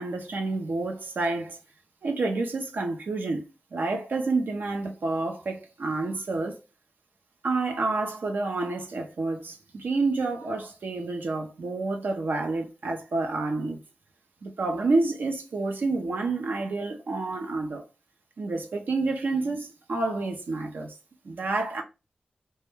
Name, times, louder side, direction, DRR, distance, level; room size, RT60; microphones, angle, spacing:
voice 1, 0.0-1.6 2.0-3.4 3.7-6.6 7.4-13.8 14.4-17.8 18.4-20.9 21.2-21.8, right 3 dB, 80° right, 0.4 m, -29 dB
2.2 x 2.0 x 3.0 m
cardioid pair, 60°, 3 cm